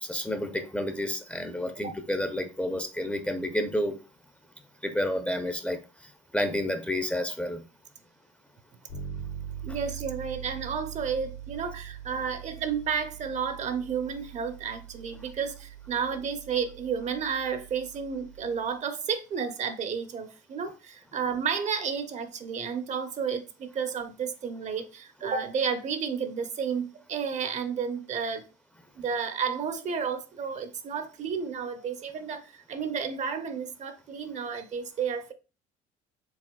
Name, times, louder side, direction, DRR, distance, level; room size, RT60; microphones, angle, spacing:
voice 1, 0.0-3.9 4.8-5.8 6.3-7.6, left 1 dB, 5° left, 0.5 m, -30 dB
Bass guitar, 8.9-18.6, right 9 dB, 90° left, 1.7 m, -42 dB
voice 2, 9.6-28.4 29.0-35.3, right 6 dB, 45° right, 0.6 m, -32 dB
4.8 x 3.4 x 2.3 m
supercardioid pair, 80°, 17 cm